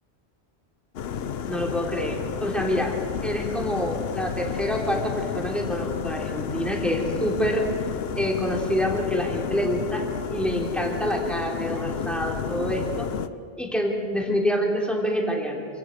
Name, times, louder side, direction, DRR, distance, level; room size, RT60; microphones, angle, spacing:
sound 1, 0.9-13.3, left 7 dB, 70° left, 1.0 m, -31 dB
voice 1, 1.5-7.7 8.1-13.1 13.6-15.7, equal, ahead, 0 dB, 3.5 m, -27 dB
27.5 x 17.0 x 6.7 m, 2.5 s
omnidirectional pair, 1.1 m